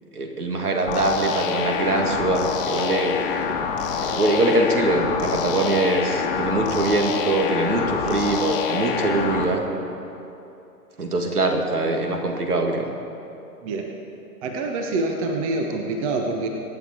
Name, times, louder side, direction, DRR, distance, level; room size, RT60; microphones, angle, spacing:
voice 1, 0.1-3.2 4.0-9.7 11.0-12.9, right 2 dB, 70° right, 3 dB, 2.2 m, -23 dB
sound 1, 0.9-9.4, left 6 dB, 35° left, 1.4 m, -26 dB
voice 2, 8.0-8.4 13.6-13.9 14.4-16.5, right 3 dB, 20° right, 3 dB, 0.9 m, -27 dB
23.0 x 9.4 x 4.5 m, 2.8 s
figure-of-eight pair, 120°, 47 cm